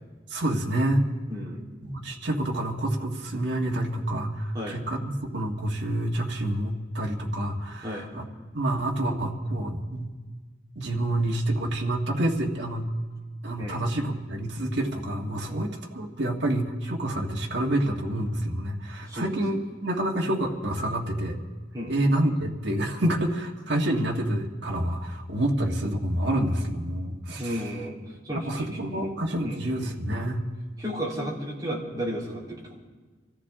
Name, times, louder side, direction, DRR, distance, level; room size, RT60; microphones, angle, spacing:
voice 1, 0.3-1.0 1.8-8.2 8.5-10.1 10.7-12.9 13.4-21.4 21.9-27.8 28.3-30.4, right 1 dB, 65° right, -1 dB, 1.6 m, -28 dB
voice 2, 1.3-1.6 4.5-4.8 7.8-8.1 13.6-13.8 15.5-15.7 19.1-19.4 21.7-21.9 27.4-28.0 28.2-29.1 29.4-29.6 30.8-32.8, equal, 20° right, -5 dB, 3.4 m, -33 dB
25.5 x 14.0 x 3.6 m, 1.4 s
head